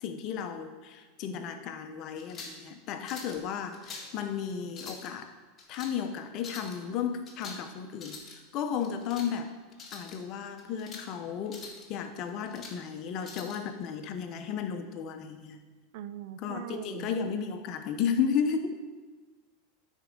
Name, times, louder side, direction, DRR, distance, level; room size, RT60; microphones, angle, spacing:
voice 1, 0.0-5.3 5.7-9.6 9.9-15.6 16.4-18.7, left 7 dB, 50° left, 7 dB, 0.8 m, -34 dB
sound 1, 2.2-2.6 3.1-3.4 3.7-4.1 4.7-5.1 5.6-5.9 6.4-6.8 7.3-7.6 7.9-8.4 8.8-9.3 9.7-10.2 10.6-11.1 11.5-11.8 12.3-12.8 13.2-13.6, left 4 dB, 30° left, 1.9 m, -45 dB
voice 2, 15.9-17.1, right 11 dB, 65° right, 13 dB, 0.4 m, -41 dB
9.6 x 4.5 x 5.3 m, 1.4 s
hypercardioid pair, 110°, 0 cm